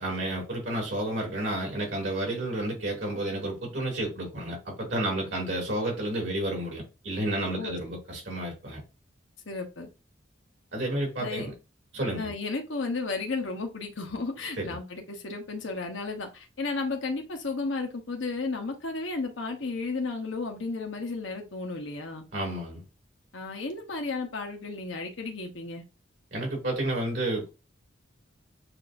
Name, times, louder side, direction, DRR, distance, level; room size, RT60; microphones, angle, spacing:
voice 1, 0.0-8.8 10.7-11.5 11.9-12.3 14.6-14.7 22.3-22.8 26.3-27.5, right 1 dB, 70° right, 2.4 m, -31 dB
voice 2, 9.5-9.9 11.2-11.5 12.2-22.2 23.3-25.8, left 3 dB, 80° left, 0.9 m, -33 dB
7.5 x 2.5 x 2.5 m
head